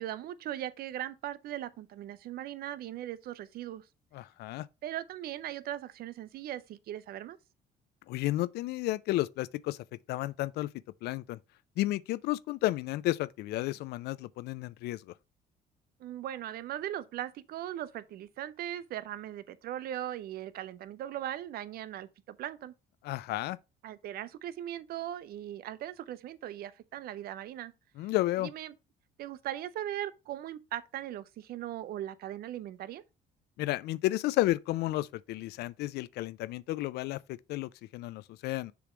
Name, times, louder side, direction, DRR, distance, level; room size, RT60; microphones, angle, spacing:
voice 1, 0.0-3.8 4.8-7.4 16.0-22.7 23.8-27.7 28.4-28.7 29.2-33.0, right 12 dB, 65° right, 0.6 m, -39 dB
voice 2, 4.1-4.7 8.1-9.8 10.1-10.7 11.0-11.4 11.8-15.1 23.0-23.6 28.0-28.5 33.6-38.7, left 16 dB, 75° left, 0.4 m, -32 dB
6.8 x 3.1 x 5.0 m
cardioid pair, 110°, 17 cm